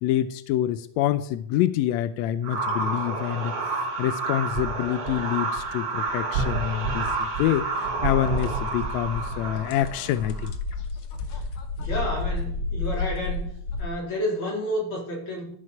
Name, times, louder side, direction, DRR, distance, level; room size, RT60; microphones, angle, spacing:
voice 1, 0.0-3.5 4.0-10.5, left 12 dB, 85° left, 13 dB, 1.5 m, -26 dB
sound 1, 2.4-10.5, right 3 dB, 50° right, 2.6 m, -29 dB
sound 2, 8.4-8.5 8.8-13.9, left 3 dB, 60° left, 1.5 m, -31 dB
voice 2, 11.8-13.5 13.8-15.5, left 1 dB, 40° left, -2 dB, 4.1 m, -30 dB
13.5 x 6.6 x 5.8 m, 0.64 s
omnidirectional pair, 3.7 m